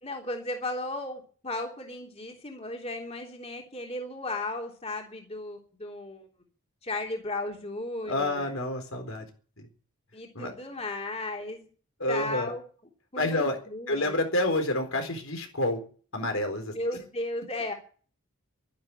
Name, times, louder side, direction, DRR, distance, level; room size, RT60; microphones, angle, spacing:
voice 1, 0.0-6.3 6.8-8.5 9.2-9.3 10.1-11.7 12.1-12.6 13.1-14.2 16.7-17.7, left 2 dB, 30° left, 1 dB, 3.4 m, -35 dB
voice 2, 8.0-9.2 9.6-9.7 10.3-10.5 12.0-12.5 13.2-13.6 13.9-15.8 16.1-16.7, left 1 dB, 70° left, 5 dB, 4.2 m, -28 dB
12.5 x 12.0 x 9.8 m, 0.42 s
head